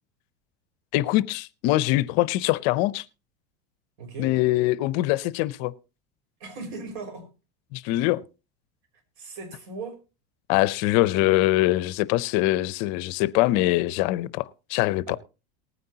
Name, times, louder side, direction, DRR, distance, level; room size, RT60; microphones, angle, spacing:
voice 1, 0.9-3.0 4.2-5.7 7.7-8.2 10.5-15.2, left 17 dB, 60° left, 0.7 m, -23 dB
voice 2, 4.0-4.3 6.4-7.3 9.2-10.0 15.1-15.2, right 3 dB, 65° right, 5.2 m, -38 dB
19.5 x 9.5 x 2.8 m
supercardioid pair, 135°, 31 cm